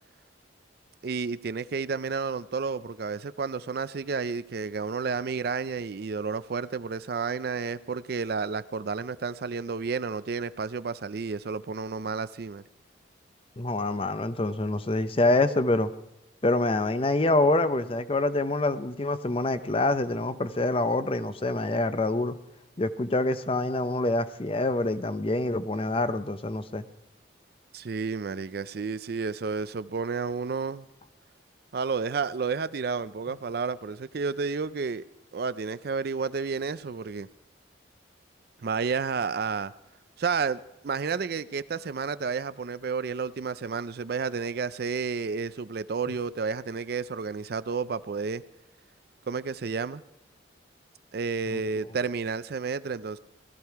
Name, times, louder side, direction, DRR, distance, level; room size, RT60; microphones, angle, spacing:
voice 1, 1.0-12.6 27.7-30.8 31.7-35.0 35.3-37.3 38.6-39.7 40.2-48.4 49.3-50.0 51.1-53.2, right 5 dB, 55° right, 0.4 m, -31 dB
voice 2, 13.6-15.9 16.4-22.4 22.8-26.8 51.5-51.6, left 2 dB, 30° left, 0.6 m, -26 dB
18.0 x 13.5 x 4.6 m
head